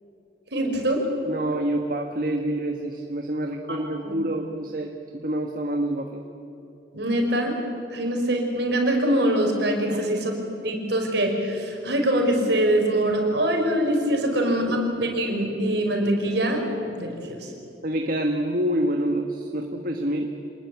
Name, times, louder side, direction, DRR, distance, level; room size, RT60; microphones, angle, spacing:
voice 1, 0.5-1.1 3.7-3.8 4.0-4.1 6.9-7.5 7.9-10.3 10.6-17.5, right 1 dB, 65° right, 2 dB, 5.1 m, -23 dB
voice 2, 1.3-6.2 14.5-14.8 17.8-20.3, right 1 dB, 50° right, 3 dB, 1.5 m, -27 dB
26.0 x 20.0 x 8.5 m, 2.9 s
head